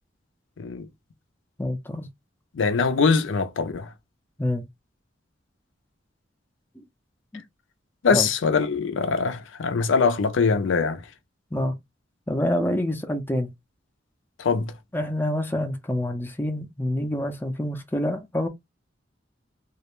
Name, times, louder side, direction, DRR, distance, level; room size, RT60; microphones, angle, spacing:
voice 1, 1.6-2.1 4.4-4.7 6.8-6.9 7.3-7.4 8.1-8.3 11.5-11.8 12.3-13.5 14.9-18.5, left 1 dB, 10° left, 0.5 m, -27 dB
voice 2, 2.5-3.9 8.0-11.0 14.4-14.7, left 5 dB, 85° left, 0.5 m, -22 dB
2.4 x 2.1 x 3.0 m
head